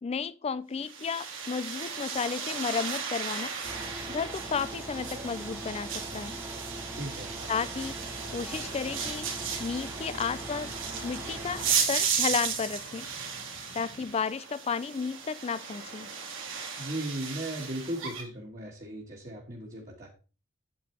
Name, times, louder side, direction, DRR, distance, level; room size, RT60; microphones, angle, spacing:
voice 1, 0.0-3.5 4.1-6.4 7.5-8.0 8.3-9.3 9.6-10.7 11.0-13.1 13.7-16.1, left 5 dB, 30° left, 0.4 m, -33 dB
sound 1, 0.8-18.2, right 6 dB, 70° right, 2.4 m, -35 dB
sound 2, 3.6-11.8, right 1 dB, 10° right, 0.7 m, -41 dB
sound 3, 6.3-14.1, left 1 dB, 75° left, 2.3 m, -52 dB
voice 2, 6.9-7.3 16.8-20.1, right 1 dB, 40° right, 1.5 m, -37 dB
8.6 x 8.2 x 3.3 m
head